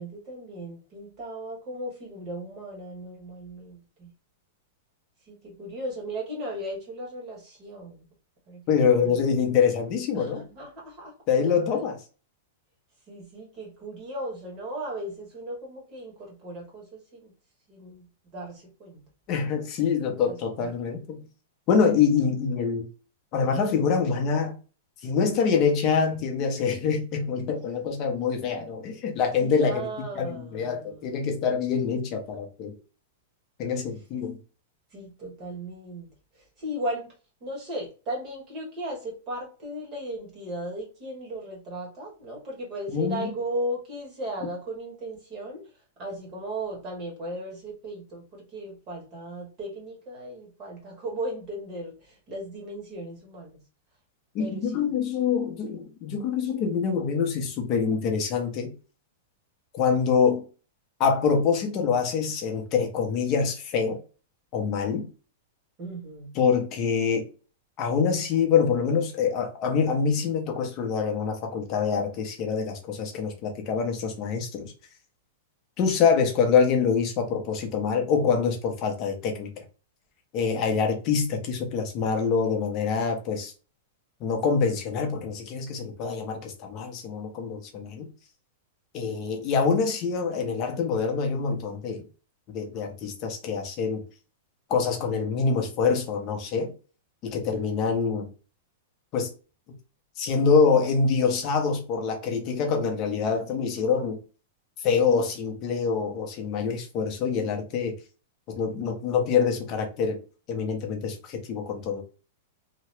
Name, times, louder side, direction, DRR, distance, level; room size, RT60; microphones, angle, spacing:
voice 1, 0.0-4.1 5.3-8.0 8.5-8.6 9.0-9.1 10.1-11.1 11.7-11.8 13.1-17.3 17.7-18.1 18.3-19.1 20.0-20.8 29.4-31.1 34.9-36.1 36.6-37.1 37.4-45.6 46.0-53.6 54.4-54.9 65.8-66.3, right 1 dB, 25° right, 1.1 m, -36 dB
voice 2, 8.7-10.4 11.3-12.0 19.3-21.2 21.7-22.9 23.3-24.5 25.0-29.8 30.2-32.7 33.6-34.4 42.9-43.2 54.3-58.7 59.7-60.4 61.0-64.0 64.5-65.1 66.3-67.2 67.8-74.7 75.8-79.6 80.3-83.5 84.2-88.1 88.9-92.0 92.5-94.0 94.7-96.7 97.2-98.3 99.1-99.3 100.2-104.2 104.8-107.9 108.5-110.2 110.5-112.0, left 6 dB, 25° left, 0.6 m, -25 dB
2.8 x 2.1 x 3.2 m
supercardioid pair, 180°, 0 cm